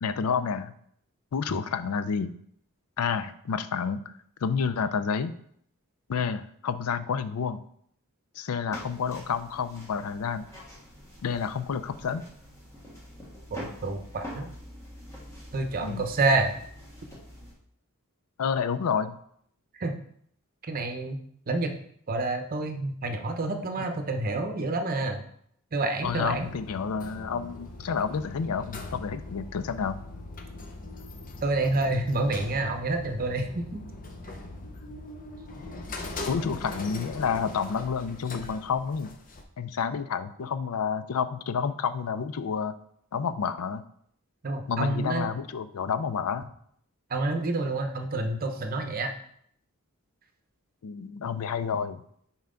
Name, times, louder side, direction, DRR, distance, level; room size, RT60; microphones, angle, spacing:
voice 1, 0.0-0.7 1.3-2.3 3.0-4.1 4.4-5.3 6.1-7.6 8.4-10.5 11.2-12.3 15.8-16.0 18.4-19.2 23.8-23.9 26.0-30.0 36.3-39.1 39.6-42.8 43.1-43.8 44.7-46.5 50.8-52.0, left 6 dB, 75° left, 12 dB, 0.4 m, -29 dB
sound 1, 8.7-17.5, equal, 15° left, 1.5 m, -45 dB
voice 2, 13.5-14.5 15.5-16.5 19.8-19.9 20.6-21.2 21.5-21.8 22.1-25.2 25.7-26.5 31.4-33.8 44.4-45.3 47.1-49.1, right 2 dB, 40° right, 6 dB, 0.7 m, -28 dB
sound 2, 26.0-39.4, left 2 dB, 40° left, 0.7 m, -41 dB
5.7 x 4.4 x 3.8 m, 0.66 s
head